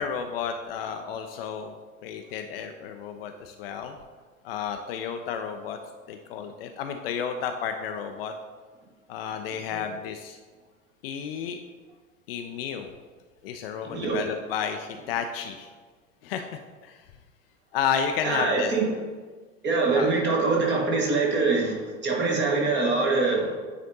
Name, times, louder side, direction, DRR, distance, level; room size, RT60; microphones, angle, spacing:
voice 1, 0.0-1.7 2.0-4.0 4.4-5.8 6.1-8.3 9.1-10.4 11.0-11.6 12.3-12.9 13.4-15.7 16.2-17.0 17.7-18.7 19.9-20.1, left 7 dB, 45° left, 6 dB, 0.5 m, -32 dB
voice 2, 13.8-14.2 18.2-18.9 19.6-23.5, right 3 dB, 25° right, -2 dB, 1.6 m, -24 dB
9.1 x 4.2 x 2.7 m, 1.4 s
figure-of-eight pair, 80°, 40 cm